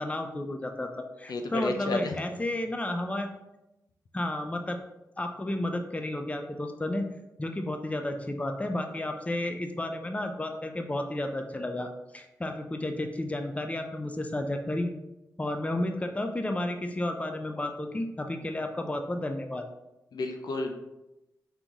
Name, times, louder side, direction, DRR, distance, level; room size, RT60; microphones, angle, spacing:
voice 1, 0.0-3.3 4.1-4.8 5.2-7.1 7.4-14.9 15.4-19.7, left 1 dB, 20° left, 5 dB, 0.5 m, -32 dB
voice 2, 1.3-2.2 20.1-20.7, left 2 dB, 65° left, 4 dB, 0.5 m, -31 dB
3.9 x 2.9 x 3.6 m, 0.94 s
supercardioid pair, 45°, 7 cm